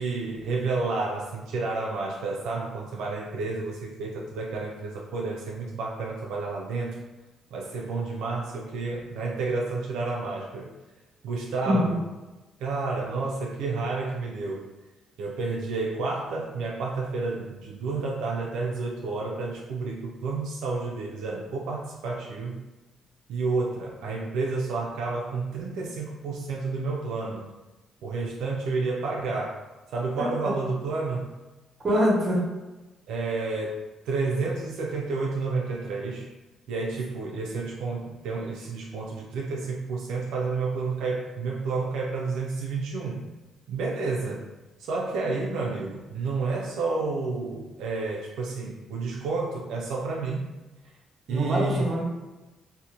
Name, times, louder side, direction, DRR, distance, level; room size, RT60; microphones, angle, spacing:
voice 1, 0.0-7.0 7.5-10.7 11.2-12.0 12.6-14.7 15.2-22.6 23.3-27.5 28.0-29.6 29.9-31.3 33.1-36.3 36.7-43.2 43.7-44.5 44.8-50.5 50.8-50.9 51.3-51.9, right 3 dB, 85° right, -2 dB, 0.3 m, -30 dB
voice 2, 31.8-32.4 51.3-52.0, equal, 40° right, -4 dB, 1.0 m, -24 dB
2.8 x 2.0 x 2.5 m, 1.1 s
cardioid pair, 90°, 0 cm